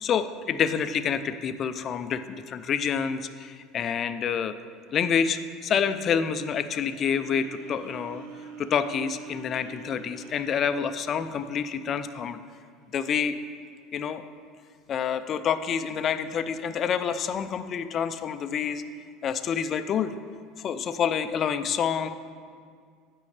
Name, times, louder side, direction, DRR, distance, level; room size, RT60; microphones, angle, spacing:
voice 1, 0.0-4.5 4.9-8.2 8.6-12.4 12.9-13.3 13.9-14.2 14.9-18.8 19.2-20.1 20.6-22.1, left 7 dB, 40° left, 11 dB, 0.5 m, -28 dB
sound 1, 4.8-13.0, right 6 dB, 80° right, 0.9 m, -47 dB
15.5 x 5.4 x 3.3 m, 2.1 s
supercardioid pair, 100°, 0 cm